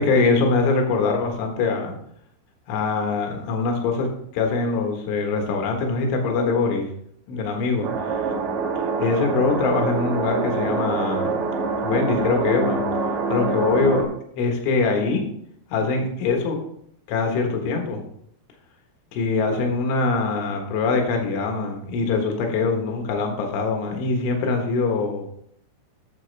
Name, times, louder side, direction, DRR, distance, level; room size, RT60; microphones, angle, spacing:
voice 1, 0.0-2.0 2.7-6.9 7.3-8.2 9.0-11.4 11.8-12.8 13.3-14.1 14.4-15.3 15.7-16.6 17.1-18.0 19.1-25.3, left 4 dB, 70° left, 3 dB, 3.7 m, -23 dB
sound 1, 7.8-14.0, right 4 dB, 75° right, 2.0 m, -25 dB
12.0 x 7.5 x 3.4 m, 0.70 s
omnidirectional pair, 5.8 m